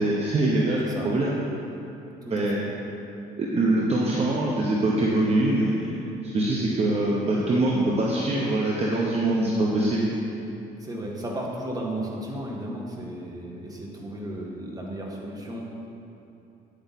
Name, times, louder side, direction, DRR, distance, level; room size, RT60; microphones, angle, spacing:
voice 1, 0.0-1.4 2.3-2.6 3.4-5.9 6.2-10.1, right 2 dB, 35° right, -3 dB, 1.1 m, -23 dB
voice 2, 2.2-2.7 10.8-15.6, right 1 dB, 20° right, -2 dB, 1.7 m, -34 dB
9.4 x 8.2 x 4.3 m, 2.9 s
cardioid pair, 110°, 17 cm